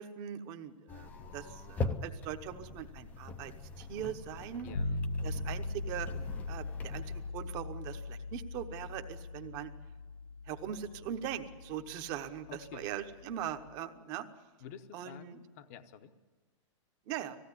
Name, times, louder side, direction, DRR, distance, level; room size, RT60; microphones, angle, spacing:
voice 1, 0.0-4.7 5.2-6.1 6.5-9.7 10.5-14.2 14.9-15.4 17.1-17.4, right 10 dB, 20° right, 8 dB, 0.9 m, -41 dB
sound 1, 0.9-7.3, left 3 dB, 10° left, 0.6 m, -42 dB
voice 2, 4.6-5.1 12.5-12.9 14.6-16.1, left 8 dB, 30° left, 11 dB, 0.8 m, -50 dB
sound 2, 4.7-13.7, left 2 dB, 85° left, 1.1 m, -40 dB
19.0 x 16.0 x 9.8 m, 1.3 s
supercardioid pair, 175°, 17 cm